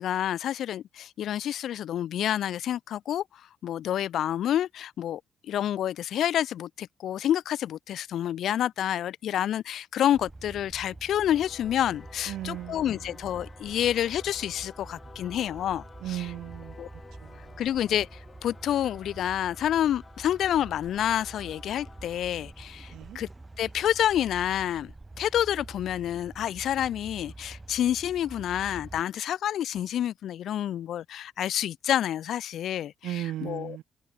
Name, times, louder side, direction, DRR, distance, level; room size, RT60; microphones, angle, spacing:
voice 1, 0.0-15.8 16.1-16.3 16.8-16.9 17.6-23.3 23.6-33.8, left 11 dB, 65° left, 1.1 m, -28 dB
sound 1, 10.1-29.0, right 2 dB, 20° right, 5.1 m, -47 dB
Singing / Musical instrument, 11.1-24.0, left 4 dB, 40° left, 6.5 m, -53 dB
voice 2, 12.3-13.1 16.0-16.8 17.2-17.6 22.9-23.2 33.0-33.8, right 13 dB, 70° right, 2.1 m, -36 dB
hypercardioid pair, 40°, 0 cm